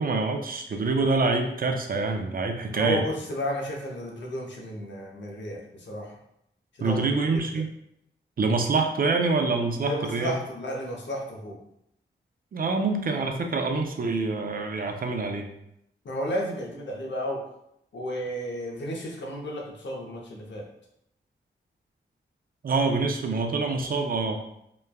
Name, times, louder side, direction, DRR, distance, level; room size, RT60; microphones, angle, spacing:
voice 1, 0.0-3.0 6.8-7.7 8.4-10.4 12.5-15.5 22.6-24.4, right 3 dB, 50° right, 4 dB, 0.4 m, -26 dB
voice 2, 2.7-6.2 6.8-7.1 9.8-11.6 16.0-17.4 17.9-20.6, equal, 70° left, -1 dB, 0.7 m, -32 dB
3.0 x 2.2 x 2.2 m, 0.78 s
cardioid pair, 55°, 19 cm